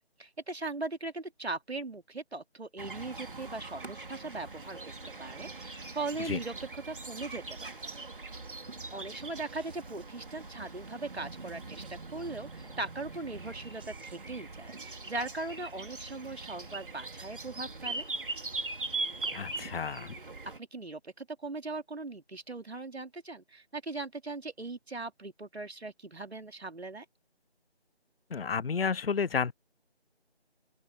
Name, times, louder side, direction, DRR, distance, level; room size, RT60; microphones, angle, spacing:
voice 1, 0.2-4.9 5.2-7.8 8.9-18.0 20.6-27.0, right 3 dB, 75° right, 2.6 m, -39 dB
sound 1, 2.8-20.6, right 3 dB, 55° right, 2.8 m, -41 dB
sound 2, 6.1-6.6 7.3-7.4 7.6-8.4 8.9-9.0 9.4-10.4 11.7-12.6 13.4-13.5 13.8-14.5 14.8-14.9, right 7 dB, 10° right, 1.6 m, -61 dB
voice 2, 19.3-20.2 28.3-29.5, left 6 dB, 65° left, 0.6 m, -31 dB
open air
figure-of-eight pair, 170°, 32 cm